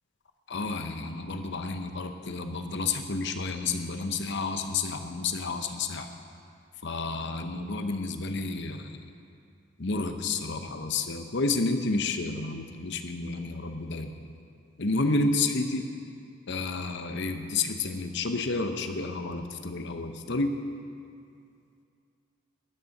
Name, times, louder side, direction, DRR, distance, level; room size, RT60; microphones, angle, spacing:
voice 1, 0.5-6.1 6.8-9.0 9.8-14.1 14.8-15.8 16.5-20.5, left 3 dB, 60° left, 7 dB, 0.9 m, -30 dB
13.0 x 6.8 x 9.7 m, 2.4 s
head